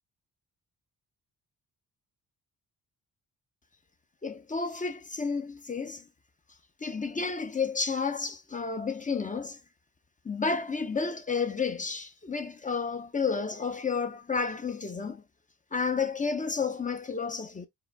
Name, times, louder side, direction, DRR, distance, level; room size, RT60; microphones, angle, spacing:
voice 1, 4.2-6.0 6.8-9.6 10.2-15.2 15.7-17.7, left 5 dB, 20° left, 0.5 m, -31 dB
4.8 x 2.6 x 3.4 m
cardioid pair, 125°, 36 cm